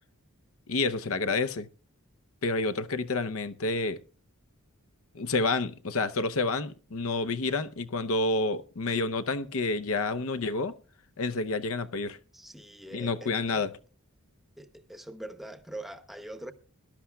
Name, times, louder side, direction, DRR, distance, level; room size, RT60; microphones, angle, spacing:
voice 1, 0.7-1.7 2.4-4.0 5.1-10.8 11.2-12.2 12.9-13.7, left 3 dB, 65° left, 0.7 m, -29 dB
voice 2, 12.3-13.6 14.6-16.5, right 1 dB, ahead, 0.8 m, -43 dB
21.0 x 11.5 x 2.3 m
head